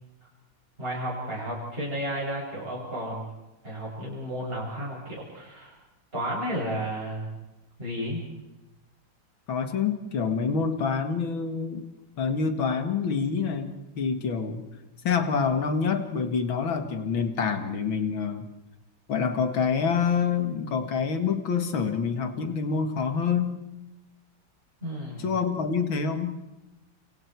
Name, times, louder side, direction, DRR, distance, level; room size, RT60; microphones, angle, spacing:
voice 1, 0.8-3.3 3.6-5.7 6.1-7.3 7.8-8.2 24.8-25.3, equal, 25° right, -6 dB, 8.1 m, -32 dB
voice 2, 9.5-11.9 12.2-14.6 15.0-18.4 19.1-23.6 25.2-26.4, left 6 dB, 70° left, 7 dB, 2.8 m, -27 dB
30.0 x 29.5 x 4.8 m, 1.0 s
omnidirectional pair, 2.3 m